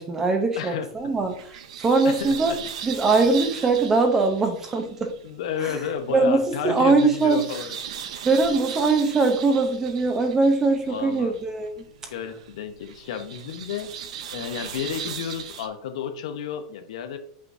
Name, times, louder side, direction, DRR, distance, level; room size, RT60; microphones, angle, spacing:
voice 1, 0.0-2.6 2.8-5.1 5.6-5.7 6.1-7.4 8.2-11.9, right 3 dB, 15° right, 5 dB, 0.7 m, -21 dB
voice 2, 0.6-0.9 2.0-2.6 5.2-7.8 10.9-11.3 12.1-13.9 14.3-17.2, left 8 dB, 70° left, 7 dB, 0.9 m, -32 dB
sound 1, 1.0-15.7, right 8 dB, 90° right, 0.8 m, -39 dB
6.2 x 5.9 x 2.6 m, 0.62 s
supercardioid pair, 175°, 3 cm